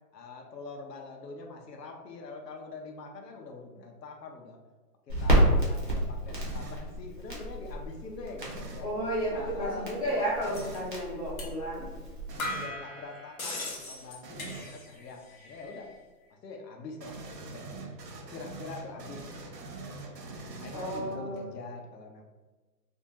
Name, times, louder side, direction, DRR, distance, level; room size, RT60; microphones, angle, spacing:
voice 1, 0.1-4.6 5.1-8.9 9.3-9.9 12.3-15.9 16.4-17.9 18.3-19.5 19.8-22.2, left 3 dB, 90° left, 1 dB, 0.7 m, -44 dB
Crackle, 5.1-12.4, right 1 dB, 35° right, 0.5 m, -30 dB
sound 1, 6.4-6.9 8.4-8.9 10.4-10.9 12.3-12.8 14.2-14.7 17.0-21.4, right 3 dB, 85° right, 0.7 m, -43 dB
voice 2, 8.8-11.9 20.7-21.5, equal, 25° left, -9 dB, 0.6 m, -32 dB
sound 2, 10.5-10.8 11.4-11.5 11.9-12.0 12.4-15.0 15.3-15.9, left 2 dB, 60° left, 0.8 m, -39 dB
2.5 x 2.2 x 2.9 m, 1.3 s
hypercardioid pair, 165°, 48 cm